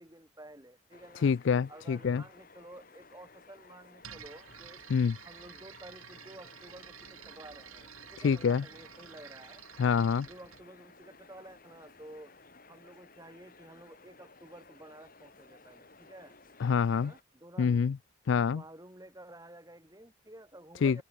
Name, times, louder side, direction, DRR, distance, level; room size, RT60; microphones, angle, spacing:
voice 1, 0.0-1.3 1.7-4.8 5.2-9.6 10.2-12.3 12.7-16.4 17.0-17.9 18.5-21.0, right 1 dB, 15° right, 3.4 m, -52 dB
sound 1, 0.9-17.2, left 3 dB, 40° left, 3.0 m, -57 dB
voice 2, 1.2-2.2 4.9-5.2 8.2-8.6 9.8-10.3 16.6-17.1 17.6-18.0 18.3-18.6 20.8-21.0, left 6 dB, 60° left, 0.3 m, -26 dB
sound 2, 4.0-10.6, right 8 dB, 90° right, 2.3 m, -51 dB
head